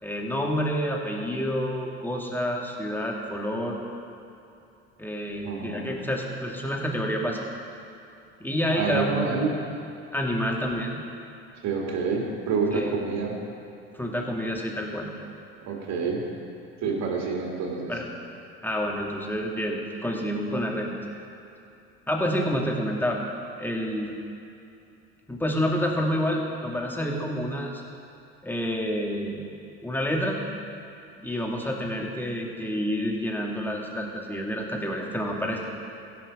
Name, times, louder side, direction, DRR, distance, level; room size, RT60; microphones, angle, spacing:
voice 1, 0.0-3.8 5.0-7.4 8.4-9.5 10.1-11.0 12.7-12.9 13.9-15.1 17.9-18.1 18.6-21.0 22.1-23.2 23.6-24.1 25.3-27.8 28.4-29.5 29.8-30.5 31.2-35.6, equal, 5° left, 0 dB, 2.1 m, -28 dB
voice 2, 5.4-5.9 8.7-9.5 11.6-13.4 15.7-16.2 16.8-17.9, right 5 dB, 55° right, -1 dB, 2.7 m, -28 dB
16.0 x 6.2 x 5.4 m, 2.8 s
hypercardioid pair, 65°, 32 cm